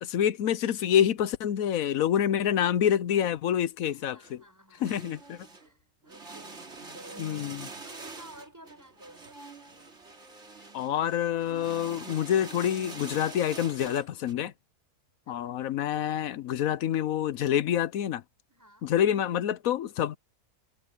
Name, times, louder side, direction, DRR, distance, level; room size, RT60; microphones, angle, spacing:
voice 1, 0.0-4.4 4.8-5.5 7.2-7.7 10.7-14.5 15.3-18.2 18.8-20.2, left 10 dB, 65° left, 1.0 m, -27 dB
voice 2, 3.9-4.9 5.6-6.6 6.9-7.5 7.8-9.5 15.2-15.6 18.5-18.9, right 1 dB, 10° right, 6.5 m, -52 dB
sound 1, 4.2-4.3 4.8-5.7 6.0-14.3, right 3 dB, 45° right, 3.0 m, -45 dB
omnidirectional pair, 1.7 m